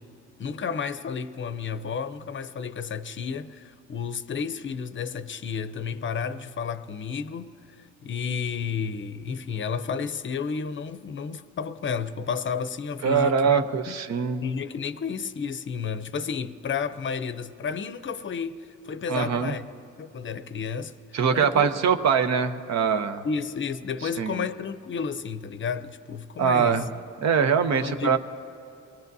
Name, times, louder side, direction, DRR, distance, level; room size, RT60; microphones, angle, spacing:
voice 1, 0.4-14.0 14.4-19.7 20.0-20.9 21.3-21.7 23.2-26.9 27.8-28.2, left 6 dB, 40° left, 0.6 m, -32 dB
voice 2, 13.0-14.4 19.1-19.5 21.1-23.3 24.2-24.4 26.4-26.9 27.2-28.2, right 6 dB, 60° right, 0.8 m, -23 dB
23.5 x 18.0 x 2.7 m
cardioid pair, 90°, 30 cm